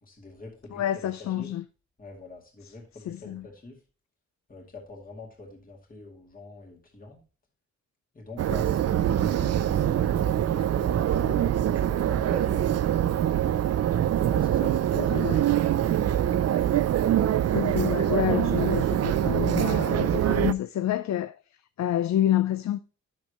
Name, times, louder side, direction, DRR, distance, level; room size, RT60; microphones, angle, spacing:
voice 1, 0.0-0.8 1.4-1.5 2.0-3.8 4.5-7.2 8.1-13.3 14.2-16.2, left 3 dB, 30° left, 2.2 m, -45 dB
voice 2, 0.7-1.6 2.6-2.7 3.1-3.5 14.9-15.4 17.5-21.4 21.8-22.8, left 11 dB, 65° left, 0.5 m, -28 dB
sound 1, 8.4-20.5, right 11 dB, 55° right, 0.5 m, -24 dB
10.0 x 6.6 x 2.9 m
wide cardioid pair, 155°, 29 cm